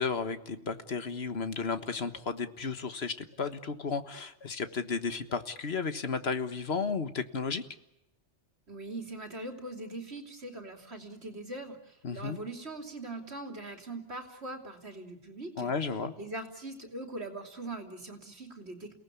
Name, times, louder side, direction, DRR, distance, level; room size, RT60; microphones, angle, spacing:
voice 1, 0.0-7.6 12.0-12.4 15.6-16.1, left 5 dB, 60° left, 10 dB, 1.7 m, -33 dB
voice 2, 8.7-15.7 16.2-18.9, right 2 dB, 65° right, 4 dB, 3.4 m, -41 dB
29.5 x 18.5 x 8.5 m, 0.88 s
omnidirectional pair, 1.2 m